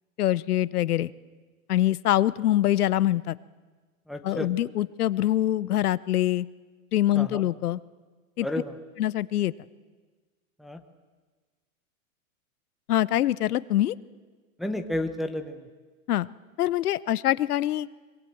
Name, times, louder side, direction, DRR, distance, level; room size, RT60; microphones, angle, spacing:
voice 1, 0.2-1.1 1.7-3.4 4.2-6.5 6.9-7.8 8.4-8.5 9.0-9.5 12.9-14.0 16.1-16.3 16.6-17.9, left 13 dB, 90° left, 18 dB, 0.9 m, -24 dB
voice 2, 4.1-4.5 7.1-7.4 8.4-8.8 10.6-10.8 14.6-15.7, left 1 dB, ahead, 5 dB, 0.8 m, -31 dB
24.0 x 22.5 x 7.8 m, 1.4 s
hypercardioid pair, 150°, 44 cm